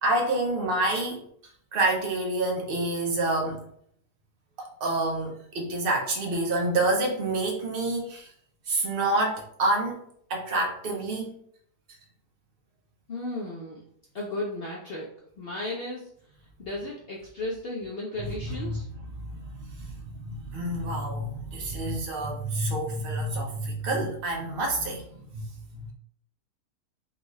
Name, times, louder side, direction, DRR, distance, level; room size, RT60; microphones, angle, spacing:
voice 1, 0.0-1.2 1.7-3.7 4.6-8.3 8.7-10.0 10.3-11.3 18.2-18.8 19.2-25.5 25.7-25.9, right 2 dB, 75° right, 0 dB, 0.5 m, -28 dB
voice 2, 13.1-13.8 14.1-15.1 15.4-16.1 16.6-18.9, left 2 dB, 60° left, -3 dB, 0.6 m, -34 dB
3.8 x 2.3 x 3.1 m, 0.65 s
omnidirectional pair, 1.7 m